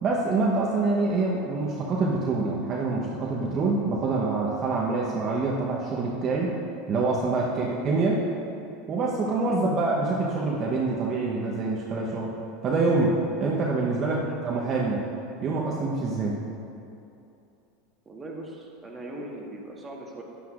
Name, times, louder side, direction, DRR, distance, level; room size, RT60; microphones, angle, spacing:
voice 1, 0.0-6.6 6.9-8.2 8.9-12.3 12.6-15.0 15.4-16.4, right 3 dB, 40° right, -4 dB, 1.0 m, -26 dB
voice 2, 18.0-20.2, right 1 dB, 20° right, -2 dB, 1.5 m, -40 dB
9.7 x 9.3 x 2.5 m, 2.6 s
hypercardioid pair, 90°, 0 cm